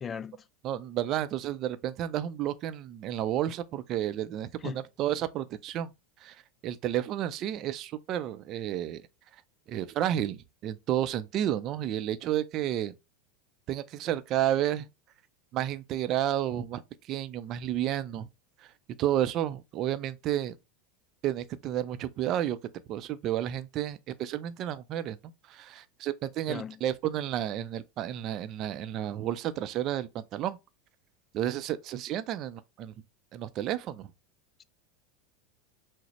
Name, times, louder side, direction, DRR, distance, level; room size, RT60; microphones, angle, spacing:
voice 1, 0.0-0.4 4.6-4.8 26.5-26.8, left 6 dB, 25° left, 0.3 m, -37 dB
voice 2, 0.6-5.9 6.2-6.4 6.6-9.0 9.7-12.9 13.7-14.9 15.5-16.8 17.1-18.3 19.0-20.6 21.2-22.6 22.9-25.2 25.5-30.6 31.3-32.9 33.3-34.1, right 11 dB, 45° right, 0.5 m, -31 dB
6.1 x 2.1 x 3.0 m
hypercardioid pair, 85°, 0 cm